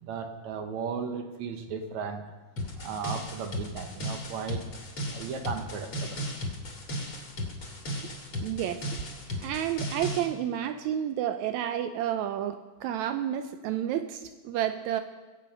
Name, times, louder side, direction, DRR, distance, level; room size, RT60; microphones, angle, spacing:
voice 1, 0.0-2.2 2.8-4.6 5.1-6.2, right 6 dB, 70° right, 6 dB, 2.0 m, -35 dB
sound 1, 2.6-10.3, equal, 45° left, 2.5 m, -36 dB
voice 2, 8.4-8.9 9.4-15.0, right 10 dB, 90° right, 9 dB, 1.6 m, -30 dB
22.0 x 8.5 x 5.3 m, 1.3 s
omnidirectional pair, 3.9 m